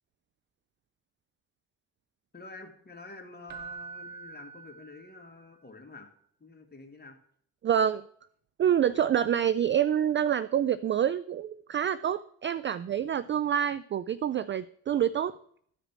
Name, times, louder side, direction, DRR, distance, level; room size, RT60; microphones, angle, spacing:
voice 1, 2.3-6.1 6.4-7.2, left 3 dB, 20° left, 2 dB, 2.5 m, -48 dB
Keyboard (musical), 3.5-5.5 8.7-8.9, right 5 dB, 50° right, 0.9 m, -45 dB
voice 2, 7.6-8.0 8.6-15.3, right 9 dB, 30° right, 16 dB, 0.4 m, -27 dB
14.0 x 5.0 x 6.1 m, 0.64 s
hypercardioid pair, 55°, 44 cm